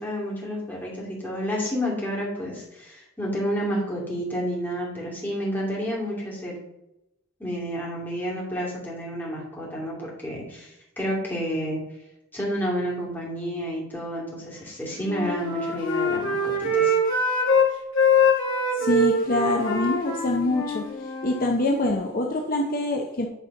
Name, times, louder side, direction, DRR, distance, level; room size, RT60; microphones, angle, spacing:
voice 1, 0.0-6.5 7.4-11.8 12.3-16.9, equal, 10° left, 2.6 m, -30 dB
Wind instrument woodwind instrument, 14.9-17.7 17.9-21.6, left 2 dB, 60° left, 1.9 m, -23 dB
voice 2, 18.7-23.3, left 2 dB, 40° left, 0.7 m, -25 dB
9.1 x 4.3 x 5.3 m
head